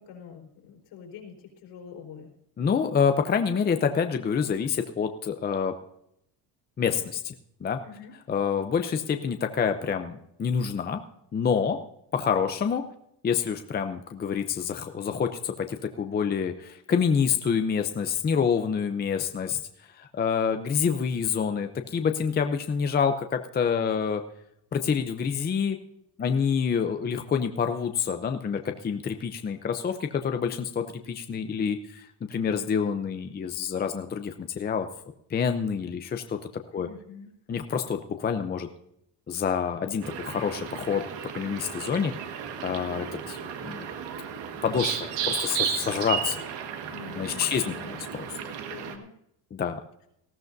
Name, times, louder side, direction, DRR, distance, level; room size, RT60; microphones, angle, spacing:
voice 1, 0.0-2.3 7.8-8.1 26.2-26.5 36.7-37.3 46.9-48.0 48.4-49.1, left 7 dB, 70° left, 1 dB, 4.2 m, -45 dB
voice 2, 2.6-5.7 6.8-7.3 7.6-7.8 8.3-11.0 11.3-11.8 12.1-12.8 13.2-19.6 20.0-24.2 24.7-25.8 26.2-34.9 35.3-36.4 36.7-36.9 37.5-38.7 39.3-41.0 41.4-42.1 42.6-43.9 44.6-46.4 47.2-47.7 48.1-48.2 49.5-49.8, left 6 dB, 20° left, 7 dB, 0.6 m, -27 dB
sound 1, 40.0-49.0, right 8 dB, 80° right, 1.7 m, -34 dB
19.0 x 14.5 x 2.6 m, 0.76 s
cardioid pair, 160°, 43 cm